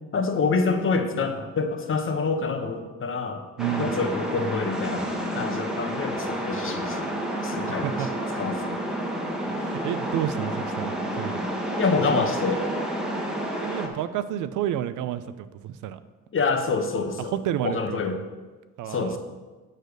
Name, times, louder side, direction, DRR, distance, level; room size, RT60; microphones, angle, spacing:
voice 1, 0.1-3.5 3.8-7.1 7.4-8.1 8.3-8.8 11.8-12.7 16.3-17.4 17.6-18.2 18.9-19.2, left 4 dB, 45° left, 6 dB, 1.0 m, -27 dB
sound 1, 3.6-13.9, right 1 dB, ahead, 1.3 m, -30 dB
voice 2, 3.6-3.9 7.8-8.1 9.5-11.5 13.6-16.0 17.4-18.2 18.8-19.2, right 11 dB, 85° right, 13 dB, 0.5 m, -30 dB
6.6 x 5.0 x 6.3 m, 1.3 s
cardioid pair, 90°, 30 cm